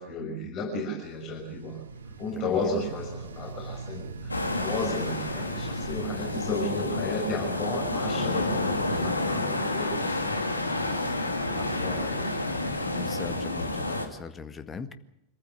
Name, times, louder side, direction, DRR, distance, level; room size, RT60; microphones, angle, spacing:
voice 1, 0.0-1.9 2.2-10.7 11.5-12.2 13.0-13.1, left 2 dB, 35° left, 1 dB, 6.1 m, -34 dB
sound 1, 1.0-6.6, right 3 dB, 70° right, 2.4 m, -40 dB
voice 2, 2.3-2.7 10.8-11.1 11.5-11.8 12.9-14.9, left 5 dB, 20° left, 10 dB, 1.8 m, -40 dB
sound 2, 4.3-14.1, left 2 dB, 80° left, 2.4 m, -29 dB
26.5 x 14.5 x 8.2 m, 0.91 s
figure-of-eight pair, 90°, 0 cm